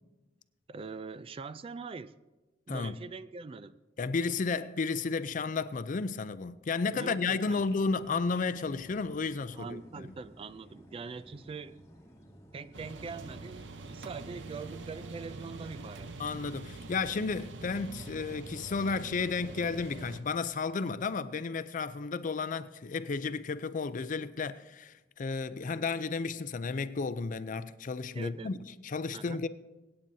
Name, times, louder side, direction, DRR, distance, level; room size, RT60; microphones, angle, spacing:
voice 1, 0.7-2.2 2.7-3.8 6.8-7.6 9.5-11.8 12.5-16.1 28.1-28.5 29.1-29.4, right 4 dB, 30° right, 0.3 m, -43 dB
voice 2, 4.0-10.1 16.2-29.5, left 4 dB, 45° left, 0.4 m, -33 dB
sound 1, 7.6-13.3, equal, 15° left, 1.5 m, -56 dB
sound 2, 12.7-20.2, right 3 dB, 80° right, 0.8 m, -44 dB
24.0 x 8.9 x 2.7 m
head